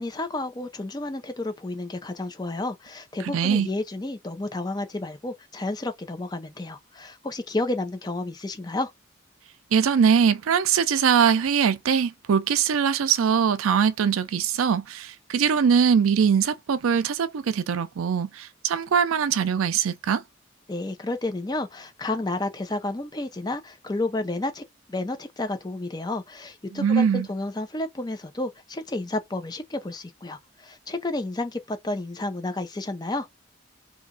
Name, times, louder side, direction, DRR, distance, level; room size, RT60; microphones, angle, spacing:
voice 1, 0.0-8.9 20.7-33.3, left 2 dB, 20° left, 0.5 m, -31 dB
voice 2, 3.3-3.7 9.7-20.2 26.7-27.3, right 7 dB, 80° right, 0.4 m, -22 dB
2.8 x 2.5 x 3.6 m
head